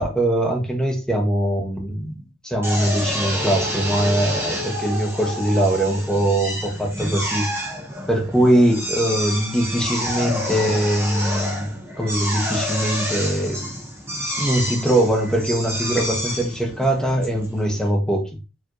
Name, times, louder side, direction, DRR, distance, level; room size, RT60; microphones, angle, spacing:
voice 1, 0.0-7.5 8.1-11.7 12.0-13.7 14.4-18.3, right 1 dB, 5° left, -1 dB, 1.1 m, -21 dB
Drill, 2.6-17.9, equal, 10° right, 0.9 m, -28 dB
4.6 x 3.2 x 3.1 m, 0.30 s
head